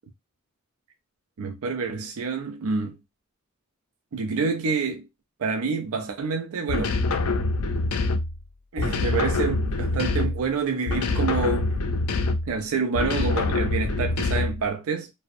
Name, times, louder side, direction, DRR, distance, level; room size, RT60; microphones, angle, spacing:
voice 1, 1.4-3.0 4.1-5.1 5.4-7.0 8.7-11.8 12.5-15.1, right 4 dB, 75° right, 0.4 m, -27 dB
sound 1, 6.7-8.4 8.8-10.5 10.9-12.6 12.9-14.7, left 3 dB, 80° left, 0.4 m, -25 dB
2.5 x 2.0 x 2.5 m
head